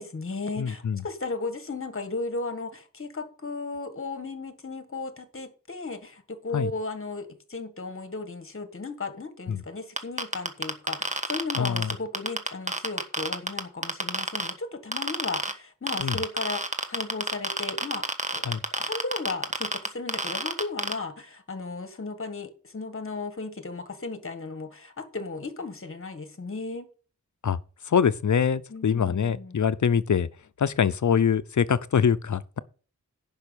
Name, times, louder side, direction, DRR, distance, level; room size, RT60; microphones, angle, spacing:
voice 1, 0.0-18.1 18.3-26.9 28.7-29.6, left 3 dB, 40° left, 1.6 m, -35 dB
voice 2, 0.6-1.0 6.5-6.7 9.5-9.6 11.6-11.9 16.0-16.2 18.5-18.6 27.4-27.6 27.9-30.3 30.6-32.6, left 7 dB, 65° left, 0.7 m, -24 dB
sound 1, 10.0-14.5 14.9-15.5 15.9-20.9, right 2 dB, 20° right, 1.3 m, -27 dB
10.5 x 5.5 x 6.9 m
wide cardioid pair, 75°, 32 cm